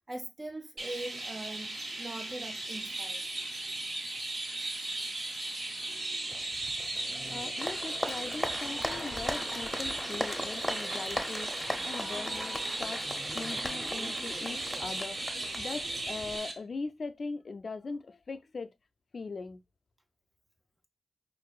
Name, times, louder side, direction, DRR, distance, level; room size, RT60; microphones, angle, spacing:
voice 1, 0.1-3.2, right 2 dB, 25° right, 0.4 m, -41 dB
Chirp tweet, 0.8-16.5, right 2 dB, 55° right, 1.4 m, -37 dB
Applause, 6.3-16.4, left 1 dB, 15° left, 0.7 m, -38 dB
voice 2, 7.3-13.0 13.3-18.7 19.1-19.6, left 4 dB, 50° left, 0.4 m, -40 dB
4.5 x 2.4 x 2.4 m
cardioid pair, 55°, 0 cm